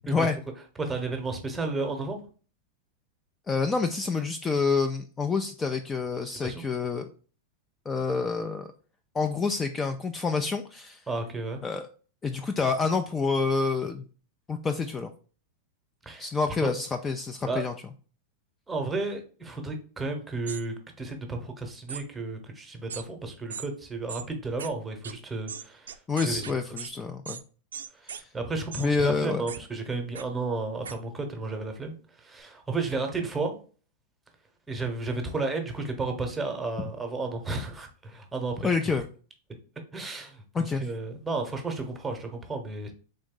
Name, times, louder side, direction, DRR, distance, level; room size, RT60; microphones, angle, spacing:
voice 1, 0.0-0.4 3.5-7.1 7.9-8.7 9.1-11.0 11.6-11.9 12.2-14.1 14.5-15.1 16.2-17.7 26.1-27.4 28.1-28.3 28.8-29.4 36.8-36.9 38.6-39.1 40.5-40.8, left 4 dB, 20° left, 6 dB, 0.3 m, -28 dB
voice 2, 0.8-2.2 6.4-6.6 11.1-11.6 16.0-16.3 16.6-16.7 17.5-17.7 18.7-25.9 26.2-26.5 27.9-33.5 34.7-38.7 39.9-40.4 40.7-42.9, right 3 dB, 10° right, 5 dB, 0.9 m, -33 dB
sound 1, 20.5-20.6 21.9-22.0 22.9-23.0 23.5-23.7 24.1-24.2 24.6-24.7 25.0-25.1 25.5-26.9 27.3-27.4 27.7-28.2 28.7-28.9 29.5-29.6 30.2-30.3 30.8-31.0, right 7 dB, 90° right, 0.3 m, -38 dB
3.7 x 2.6 x 3.7 m, 0.39 s
hypercardioid pair, 120°, 0 cm